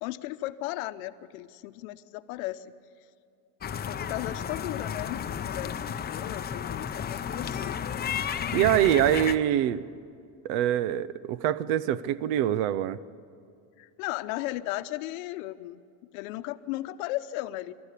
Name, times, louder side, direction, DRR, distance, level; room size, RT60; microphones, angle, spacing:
voice 1, 0.0-2.7 3.7-7.8 13.8-15.8 16.1-17.7, left 16 dB, 70° left, 11 dB, 0.9 m, -36 dB
sound 1, 3.6-9.4, left 8 dB, 20° left, 0.7 m, -33 dB
voice 2, 8.5-9.8 10.4-13.0, right 11 dB, 65° right, 17 dB, 0.9 m, -24 dB
28.0 x 13.5 x 8.4 m, 2.3 s
supercardioid pair, 120°, 44 cm